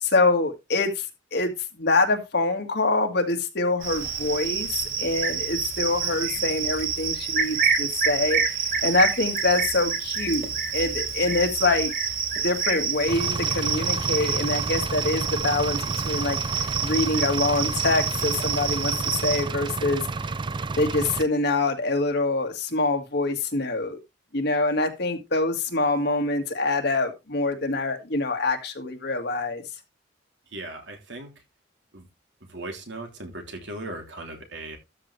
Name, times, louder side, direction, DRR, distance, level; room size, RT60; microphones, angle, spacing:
voice 1, 0.0-1.1 1.3-1.5 1.8-11.9 12.4-15.8 16.0-16.4 16.8-20.0 20.8-24.0 24.3-29.6, left 2 dB, 60° left, 2.0 m, -25 dB
Cricket, 3.8-19.4, right 6 dB, 50° right, 3.0 m, -28 dB
Engine, 13.1-21.2, right 3 dB, 25° right, 0.5 m, -30 dB
voice 2, 30.5-31.4 31.9-32.1 32.4-34.8, right 2 dB, 75° right, 3.1 m, -38 dB
13.0 x 6.0 x 3.3 m
head